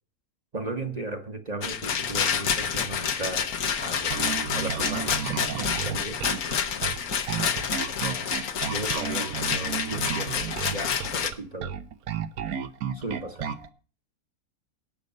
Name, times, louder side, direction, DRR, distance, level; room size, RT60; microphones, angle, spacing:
voice 1, 0.5-6.8 7.4-7.6 7.9-8.3 8.6-11.8 12.9-13.5, right 2 dB, 30° right, 0.9 m, -37 dB
Rattle, 1.6-11.3, left 7 dB, 80° left, 1.5 m, -28 dB
Bass guitar, 4.1-13.7, right 8 dB, 80° right, 1.3 m, -33 dB
17.5 x 6.6 x 5.3 m
omnidirectional pair, 1.5 m